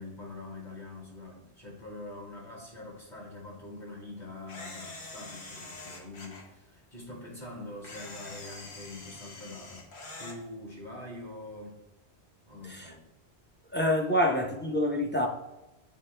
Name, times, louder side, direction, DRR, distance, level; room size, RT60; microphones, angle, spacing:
voice 1, 0.0-9.9 10.1-11.8 12.5-13.0, left 2 dB, 45° left, -2 dB, 1.6 m, -44 dB
Camera, 4.5-6.4 7.8-10.4, left 2 dB, 85° left, 1.3 m, -45 dB
voice 2, 13.7-15.3, left 1 dB, 15° left, 2 dB, 0.5 m, -27 dB
9.1 x 3.4 x 3.3 m, 0.96 s
omnidirectional pair, 1.1 m